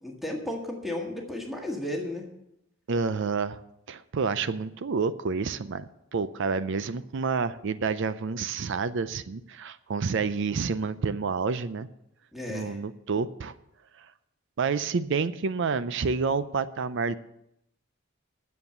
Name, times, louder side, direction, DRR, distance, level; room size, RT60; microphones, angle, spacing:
voice 1, 0.0-2.2 12.3-12.8, left 1 dB, ahead, 0 dB, 1.7 m, -34 dB
voice 2, 2.9-3.6 3.9-11.9 12.5-13.5 14.6-17.2, right 5 dB, 65° right, 14 dB, 0.5 m, -29 dB
9.5 x 7.2 x 7.9 m, 0.82 s
head